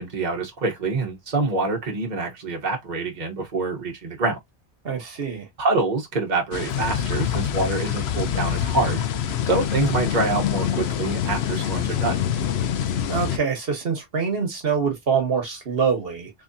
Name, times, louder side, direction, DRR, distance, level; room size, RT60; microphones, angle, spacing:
voice 1, 0.0-4.4 5.6-9.0 9.5-12.2, right 3 dB, 45° right, 1.2 m, -25 dB
voice 2, 4.8-5.5 13.1-16.3, right 6 dB, 70° right, 1.3 m, -25 dB
sound 1, 6.5-13.4, left 9 dB, 85° left, 0.9 m, -25 dB
3.6 x 3.4 x 2.6 m
omnidirectional pair, 1.1 m